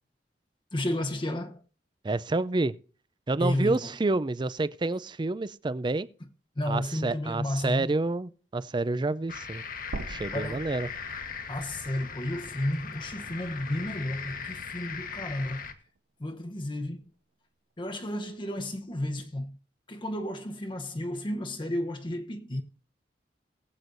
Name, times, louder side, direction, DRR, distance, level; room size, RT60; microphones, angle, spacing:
voice 1, 0.7-1.6 3.4-3.9 6.6-7.9 10.3-10.7 11.5-15.7 16.2-17.0 17.8-19.6 19.9-22.6, left 1 dB, 30° left, 0.9 m, -32 dB
voice 2, 2.0-2.7 3.3-6.1 6.7-9.6 10.1-10.9, right 2 dB, 25° right, 0.4 m, -28 dB
sound 1, 9.3-15.7, left 6 dB, 55° left, 1.2 m, -39 dB
sound 2, 9.9-14.1 14.4-14.5 16.0-16.1, right 2 dB, 80° right, 0.7 m, -44 dB
21.0 x 7.9 x 2.6 m
head